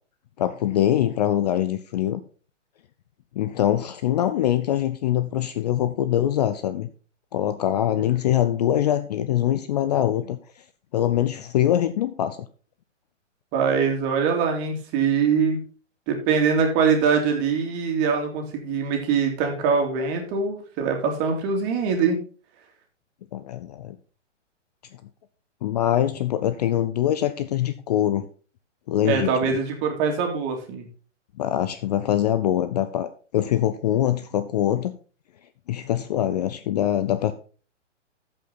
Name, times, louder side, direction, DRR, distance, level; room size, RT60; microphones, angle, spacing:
voice 1, 0.4-2.2 3.4-6.9 7.3-10.4 10.9-12.4 23.3-24.0 25.6-28.3 28.9-29.6 31.4-34.9 35.7-37.3, left 11 dB, 35° left, 12 dB, 0.5 m, -23 dB
voice 2, 13.5-15.6 16.1-22.2 29.0-30.8, right 6 dB, 30° right, 2 dB, 2.7 m, -23 dB
14.0 x 5.4 x 4.0 m, 0.39 s
hypercardioid pair, 135°, 37 cm